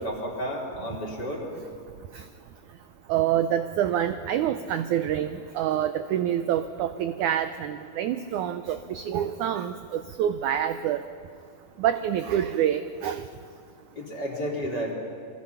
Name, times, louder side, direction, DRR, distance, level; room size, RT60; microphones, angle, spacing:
voice 1, 0.0-1.4 13.9-14.9, equal, 30° left, -1 dB, 3.3 m, -31 dB
voice 2, 3.1-11.0 11.8-13.3, right 10 dB, 80° right, 10 dB, 1.8 m, -27 dB
28.0 x 22.5 x 5.8 m, 2.2 s
omnidirectional pair, 4.2 m